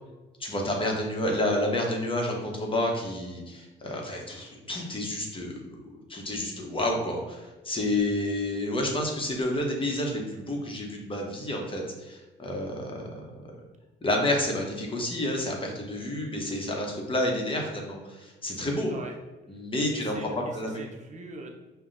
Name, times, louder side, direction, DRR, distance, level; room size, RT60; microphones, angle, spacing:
voice 1, 0.4-5.8 6.1-13.1 14.0-18.9 19.5-20.8, left 1 dB, 25° left, 0 dB, 0.9 m, -29 dB
voice 2, 19.8-21.5, right 3 dB, 35° right, 0 dB, 0.7 m, -41 dB
5.5 x 2.2 x 2.6 m, 1.1 s
cardioid pair, 90°, 20 cm